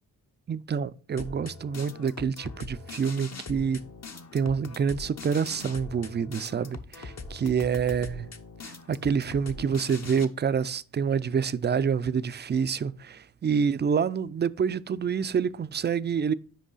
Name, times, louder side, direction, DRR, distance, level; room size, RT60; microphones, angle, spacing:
voice 1, 0.5-3.8 4.3-8.2 8.6-16.3, right 6 dB, 30° right, 0.4 m, -27 dB
sound 1, 1.2-10.2, left 4 dB, 50° left, 0.9 m, -42 dB
6.2 x 4.8 x 3.9 m
cardioid pair, 55°, 35 cm